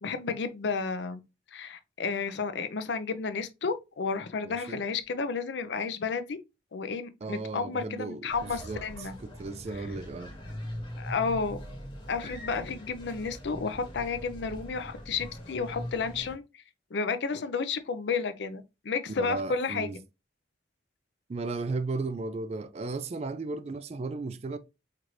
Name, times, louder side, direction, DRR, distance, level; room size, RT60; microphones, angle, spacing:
voice 1, 0.0-1.2 1.5-6.4 6.7-9.1 11.0-11.6 12.1-16.6 16.9-19.9, left 5 dB, 75° left, 0.5 m, -32 dB
voice 2, 4.4-4.8 7.2-10.3 19.2-20.0 21.3-24.6, right 3 dB, 35° right, 0.3 m, -35 dB
sound 1, 8.3-16.3, equal, 30° left, 1.1 m, -42 dB
4.5 x 2.5 x 3.0 m
head